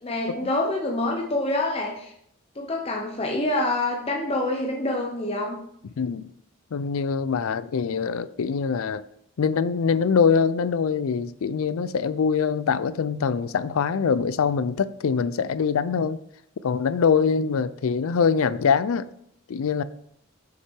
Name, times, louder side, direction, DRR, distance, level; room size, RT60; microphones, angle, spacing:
voice 1, 0.0-2.1 2.5-5.6, left 2 dB, 25° left, 0.7 m, -26 dB
voice 2, 6.0-6.3 6.7-9.0 9.4-16.2 16.6-19.0 19.5-19.8, left 6 dB, 80° left, 0.4 m, -23 dB
6.6 x 5.7 x 4.6 m
head